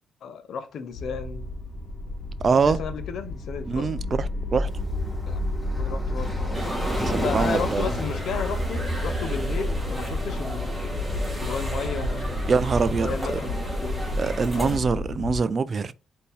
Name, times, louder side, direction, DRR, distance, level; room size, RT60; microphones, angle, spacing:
voice 1, 0.2-1.5 2.5-3.9 5.3-5.4 5.8-6.3 6.9-10.8 11.4-12.5 13.0-13.5 13.8-14.1 14.5-14.8, left 6 dB, 70° left, 0.6 m, -33 dB
sound 1, 0.9-15.4, left 1 dB, 45° left, 1.1 m, -30 dB
voice 2, 2.4-2.8 3.7-4.7 7.0-7.9 12.5-13.1 14.2-15.9, right 5 dB, 40° right, 0.4 m, -24 dB
Waves surf, 4.7-11.8, equal, ahead, 1.7 m, -35 dB
sound 2, 6.5-14.8, right 1 dB, 15° right, 1.7 m, -35 dB
4.4 x 2.8 x 3.3 m
cardioid pair, 90°, 0 cm